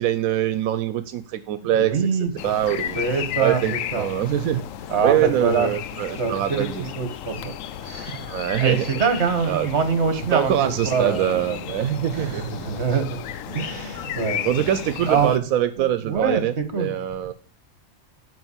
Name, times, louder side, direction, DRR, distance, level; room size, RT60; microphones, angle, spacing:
voice 1, 0.0-1.9 2.4-3.0 3.4-4.6 5.0-6.8 8.3-8.8 9.5-9.7 10.1-12.5 13.5-13.6 14.4-17.3, right 11 dB, 85° right, 1.1 m, -23 dB
voice 2, 1.7-2.5 2.9-4.1 4.9-5.7 6.2-6.7 6.9-8.3 8.6-11.6 12.1-14.5 15.0-15.4 15.8-17.3, right 5 dB, 55° right, 1.8 m, -25 dB
sound 1, 2.4-15.4, left 10 dB, 75° left, 1.0 m, -34 dB
9.4 x 5.2 x 7.1 m
omnidirectional pair, 1.4 m